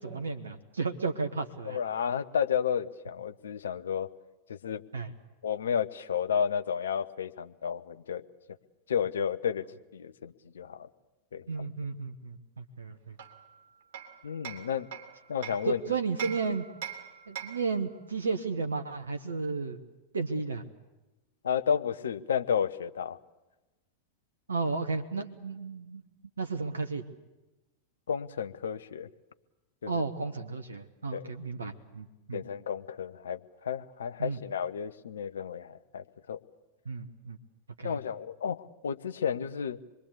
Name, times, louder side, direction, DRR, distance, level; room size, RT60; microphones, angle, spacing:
voice 1, 0.0-1.8 4.9-5.1 11.5-13.2 15.6-16.6 17.3-19.8 20.1-20.6 24.5-26.0 26.4-27.0 29.9-32.4 34.2-34.4 36.8-37.4 37.8-38.0, right 4 dB, 70° right, 7 dB, 1.2 m, -33 dB
voice 2, 1.6-4.1 4.5-4.8 5.4-8.2 8.9-9.6 9.9-10.9 11.3-11.4 14.2-14.9 15.3-15.8 21.4-23.2 28.1-29.1 29.8-30.0 31.1-31.3 32.3-36.4 37.8-39.8, left 7 dB, 65° left, 12 dB, 0.9 m, -32 dB
Hammer, 13.2-15.7 16.2-17.8, right 8 dB, 55° right, 3.1 m, -42 dB
26.5 x 22.0 x 8.3 m, 1.1 s
figure-of-eight pair, 90°, 0 cm